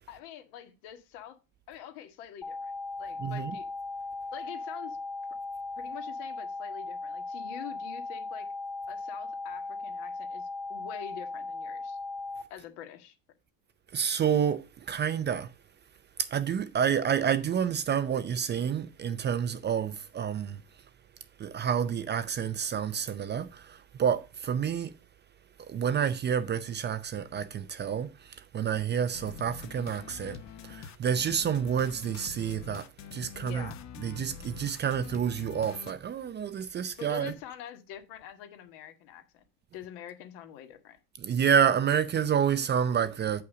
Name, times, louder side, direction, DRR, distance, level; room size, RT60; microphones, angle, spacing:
voice 1, 0.1-1.4 1.7-2.7 3.0-3.7 4.3-5.0 5.8-8.5 8.9-12.0 12.5-13.1 33.4-33.8 37.0-39.4 39.7-41.0, left 10 dB, 70° left, 1.7 m, -45 dB
sound 1, 2.4-12.4, left 3 dB, 5° left, 1.3 m, -38 dB
voice 2, 3.2-3.5 13.9-15.5 16.2-20.6 21.4-24.9 25.7-30.4 30.6-33.7 34.0-37.3 41.2-43.4, right 8 dB, 25° right, 0.5 m, -29 dB
sound 2, 29.1-35.9, left 7 dB, 40° left, 0.9 m, -45 dB
8.2 x 5.7 x 4.9 m
supercardioid pair, 125°, 41 cm